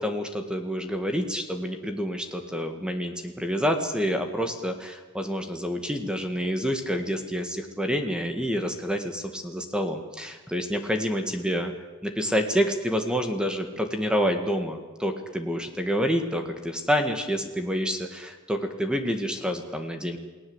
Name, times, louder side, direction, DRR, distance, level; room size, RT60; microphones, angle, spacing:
voice 1, 0.0-11.7 12.0-20.2, equal, 5° right, 5 dB, 1.9 m, -28 dB
29.5 x 18.5 x 8.1 m, 1.3 s
head